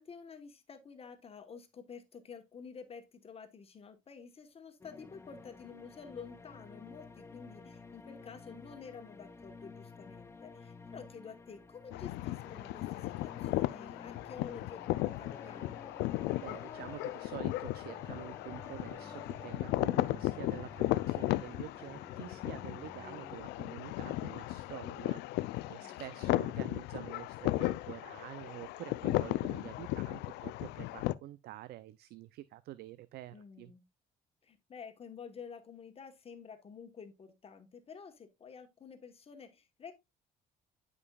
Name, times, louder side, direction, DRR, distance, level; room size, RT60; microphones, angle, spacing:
voice 1, 0.0-15.8 25.6-26.4 33.3-33.8 34.4-39.9, left 6 dB, 35° left, 1.2 m, -50 dB
sound 1, 4.8-23.4, left 4 dB, 15° left, 0.6 m, -52 dB
sound 2, 11.9-31.1, left 18 dB, 85° left, 0.4 m, -36 dB
voice 2, 16.4-33.7, right 15 dB, 70° right, 0.5 m, -48 dB
11.0 x 5.3 x 2.3 m
cardioid pair, 110°, 17 cm